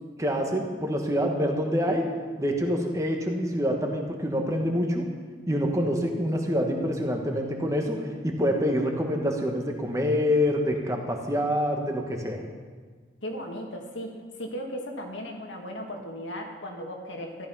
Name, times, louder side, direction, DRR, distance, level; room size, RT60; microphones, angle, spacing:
voice 1, 0.2-2.0 2.4-5.0 5.5-12.4, equal, 15° right, 2 dB, 1.4 m, -26 dB
voice 2, 13.2-17.5, equal, 85° left, 1 dB, 2.1 m, -36 dB
14.0 x 11.5 x 5.6 m, 1.5 s
head